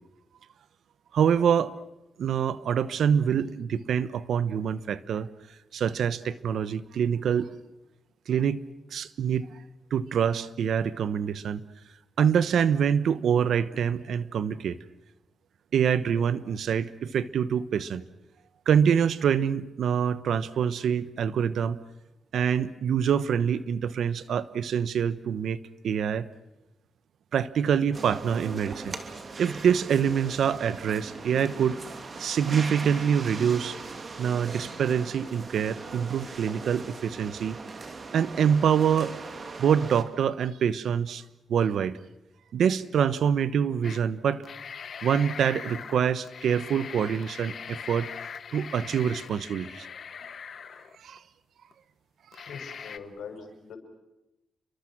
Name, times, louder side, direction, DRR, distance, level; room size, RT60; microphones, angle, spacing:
voice 1, 1.1-1.7 2.2-5.3 5.7-7.5 8.3-8.6 8.9-9.5 9.9-11.6 12.2-14.8 15.7-18.0 18.7-21.8 22.3-25.6 25.8-26.3 27.3-29.0 29.4-31.8 32.2-33.8 34.2-37.6 38.1-39.1 39.6-41.2 41.5-42.0 42.5-44.4 45.0-48.1 48.5-49.9 51.0-51.2, right 8 dB, 80° right, 15 dB, 1.1 m, -25 dB
sound 1, 27.9-40.0, right 4 dB, 45° right, 2.9 m, -40 dB
sound 2, 43.8-44.0 44.3-51.2 51.7-51.8 52.3-53.0, left 7 dB, 60° left, 1.1 m, -41 dB
voice 2, 52.5-53.8, left 5 dB, 85° left, 5 dB, 6.0 m, -42 dB
30.0 x 23.5 x 6.2 m, 0.93 s
cardioid pair, 90°, 0 cm